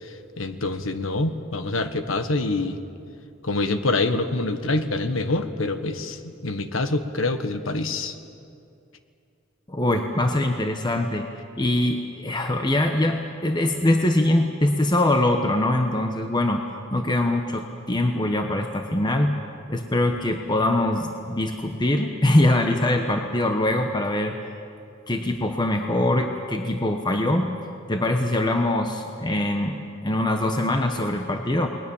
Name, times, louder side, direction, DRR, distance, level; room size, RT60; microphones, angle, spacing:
voice 1, 0.4-2.8 3.4-8.1, left 2 dB, 85° left, 9 dB, 1.4 m, -25 dB
voice 2, 9.7-11.3 11.5-16.6 16.9-19.3 19.7-24.3 25.1-27.5 27.9-31.7, left 1 dB, 20° left, 4 dB, 1.1 m, -23 dB
29.0 x 20.5 x 7.2 m, 2.5 s
head